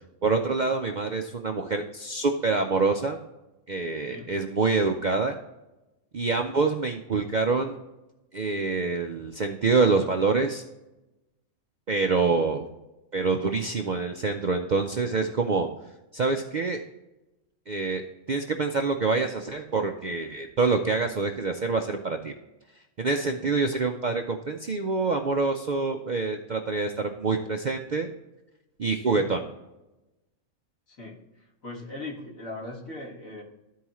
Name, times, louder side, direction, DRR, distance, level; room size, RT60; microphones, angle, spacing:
voice 1, 0.2-3.2 3.7-5.3 6.1-7.8 8.3-10.6 11.9-12.6 13.1-15.7 16.1-16.8 17.7-18.0 18.3-22.3 23.0-28.1 28.8-29.4, right 4 dB, 60° right, 4 dB, 0.4 m, -26 dB
voice 2, 31.6-33.4, left 2 dB, 70° left, -2 dB, 2.3 m, -39 dB
13.0 x 4.7 x 3.0 m, 1.0 s
omnidirectional pair, 1.5 m